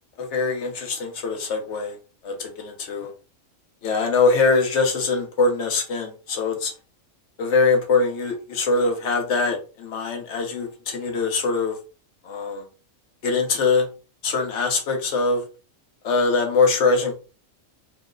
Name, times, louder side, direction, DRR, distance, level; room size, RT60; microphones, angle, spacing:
voice 1, 0.2-2.0 2.2-3.1 3.8-6.7 7.4-11.8 12.2-12.6 13.2-13.9 14.2-15.4 16.0-17.1, left 4 dB, 60° left, 3 dB, 1.1 m, -22 dB
3.0 x 2.0 x 3.7 m, 0.33 s
omnidirectional pair, 1.4 m